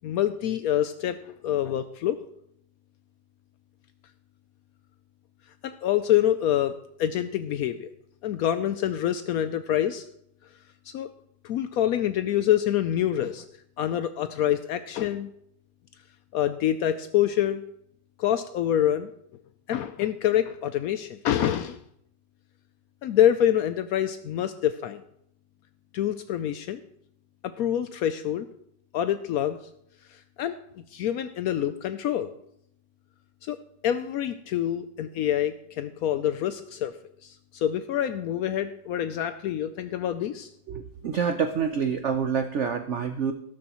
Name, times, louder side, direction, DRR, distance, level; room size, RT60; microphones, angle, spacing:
voice 1, 0.0-2.2 5.6-6.7 7.0-7.9 8.2-10.0 10.9-11.1 11.4-13.4 13.8-15.3 16.3-17.6 18.2-19.1 19.7-21.8 23.0-25.0 25.9-26.8 27.4-28.5 28.9-29.6 30.1-30.5 30.9-32.3 33.4-33.6 33.8-36.9 37.2-40.5, left 11 dB, 85° left, 10 dB, 0.8 m, -26 dB
voice 2, 40.7-43.3, right 6 dB, 85° right, 8 dB, 0.6 m, -27 dB
13.0 x 12.5 x 3.0 m, 0.73 s
omnidirectional pair, 2.1 m